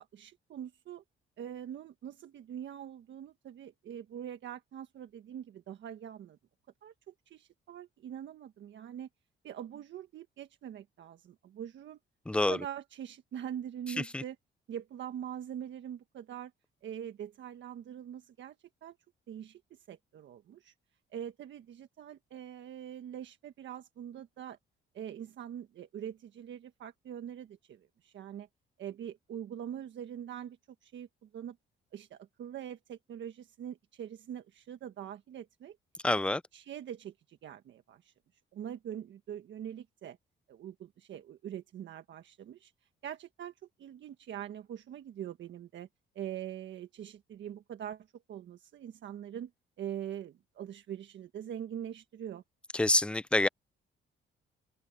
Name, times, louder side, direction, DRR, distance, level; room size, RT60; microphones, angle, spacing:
voice 1, 0.1-1.0 1.4-6.4 6.8-9.1 9.4-12.0 12.5-14.4 14.7-16.5 16.8-18.5 18.8-18.9 19.3-20.7 21.1-24.6 24.9-28.5 28.8-30.6 30.8-31.6 31.9-35.8 36.5-38.1 38.5-40.2 40.5-42.7 43.0-43.5 43.8-45.9 46.1-49.5 49.8-52.4, right 10 dB, 70° right, 1.5 m, -43 dB
voice 2, 12.3-12.6 14.1-14.2 36.0-36.4 52.7-53.5, left 2 dB, 5° left, 0.4 m, -27 dB
open air
cardioid pair, 90°, 20 cm